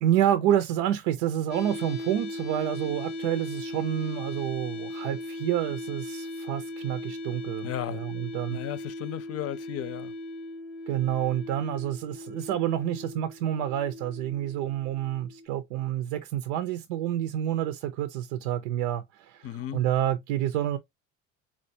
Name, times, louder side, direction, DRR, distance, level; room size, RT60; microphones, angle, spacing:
voice 1, 0.0-8.6 10.9-19.5 19.7-20.8, right 11 dB, 85° right, 0.5 m, -28 dB
sound 1, 1.5-15.5, left 1 dB, 80° left, 0.8 m, -38 dB
voice 2, 7.6-8.2 8.5-10.1 19.4-19.9, left 12 dB, 45° left, 0.6 m, -35 dB
4.3 x 2.4 x 2.6 m
supercardioid pair, 80°, 34 cm